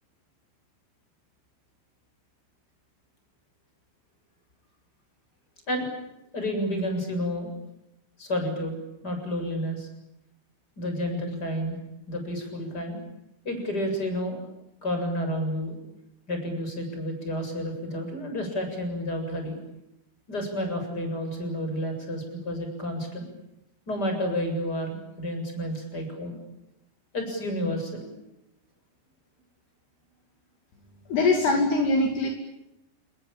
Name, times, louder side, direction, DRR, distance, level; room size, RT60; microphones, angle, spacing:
voice 1, 6.3-7.5 8.2-8.8 9.0-9.9 10.8-11.8 12.1-13.0 13.4-14.4 14.8-15.7 16.3-19.6 20.3-23.2 23.9-26.4 27.1-28.1, equal, 20° left, 4 dB, 7.7 m, -30 dB
voice 2, 31.1-32.3, left 2 dB, 65° left, 3 dB, 4.6 m, -22 dB
28.5 x 21.5 x 8.8 m, 0.88 s
omnidirectional pair, 5.3 m